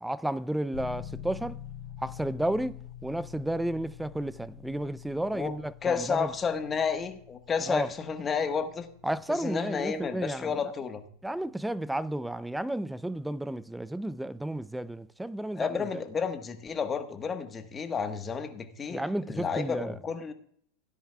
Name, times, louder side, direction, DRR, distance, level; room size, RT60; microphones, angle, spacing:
voice 1, 0.0-1.6 2.0-6.3 7.7-7.9 9.0-10.6 11.2-16.0 18.9-20.0, right 1 dB, 5° right, 0.4 m, -32 dB
sound 1, 0.7-17.5, left 10 dB, 70° left, 3.5 m, -48 dB
voice 2, 5.8-8.9 9.3-11.0 15.6-20.3, left 6 dB, 25° left, 1.4 m, -31 dB
17.0 x 10.0 x 2.4 m
hypercardioid pair, 100°, 0 cm